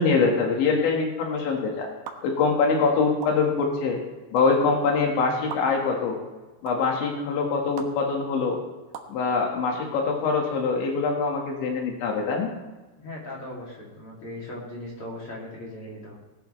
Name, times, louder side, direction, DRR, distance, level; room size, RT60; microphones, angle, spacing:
voice 1, 0.0-1.9 2.2-4.0 4.3-6.2 6.6-8.6 9.1-12.5, left 4 dB, 80° left, 0 dB, 4.2 m, -24 dB
sound 1, 2.0-2.1 3.2-3.3 4.3-4.4 5.5-5.6 6.6-6.7 7.8-7.9 8.9-9.1, right 9 dB, 75° right, 1.8 m, -35 dB
voice 2, 13.0-16.2, left 1 dB, 35° left, -3 dB, 3.2 m, -38 dB
19.5 x 11.5 x 3.3 m, 1.2 s
omnidirectional pair, 5.2 m